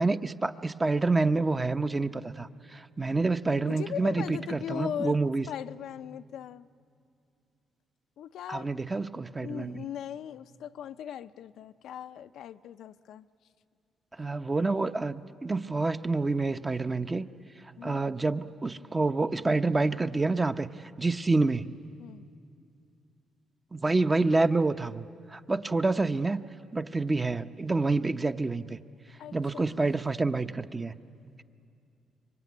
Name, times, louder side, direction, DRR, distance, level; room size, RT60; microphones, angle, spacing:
voice 1, 0.0-5.5 8.5-9.8 14.2-17.3 17.8-21.7 23.7-26.4 26.7-28.8 29.3-30.9, right 3 dB, 20° right, 9 dB, 0.8 m, -28 dB
voice 2, 3.6-5.2 5.5-6.7 8.2-8.7 9.4-13.3 17.8-18.1 22.0-22.2 29.2-29.8, left 9 dB, 75° left, 10 dB, 0.5 m, -39 dB
25.5 x 23.5 x 9.5 m, 2.5 s
cardioid pair, 90°, 0 cm